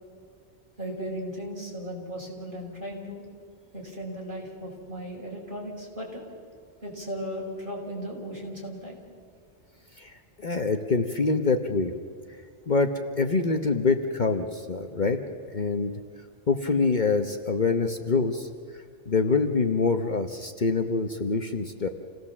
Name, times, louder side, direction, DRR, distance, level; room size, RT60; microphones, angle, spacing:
voice 1, 0.8-3.2 3.7-6.2 6.8-9.0, equal, 45° right, -3 dB, 5.7 m, -36 dB
voice 2, 10.0-11.9 12.7-12.9 13.2-15.2 15.5-15.9 16.5-18.5 19.1-21.9, left 4 dB, 45° left, 6 dB, 1.1 m, -25 dB
28.0 x 17.5 x 7.3 m, 2.2 s
omnidirectional pair, 1.2 m